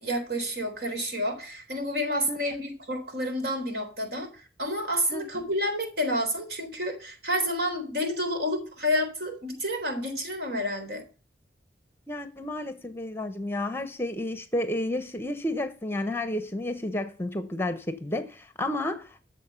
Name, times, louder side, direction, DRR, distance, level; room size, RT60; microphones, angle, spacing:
voice 1, 0.0-11.0, equal, 60° right, 3.8 m, -29 dB
voice 2, 5.1-5.4 12.1-19.2, left 1 dB, 15° left, 0.9 m, -31 dB
13.0 x 6.8 x 5.7 m
head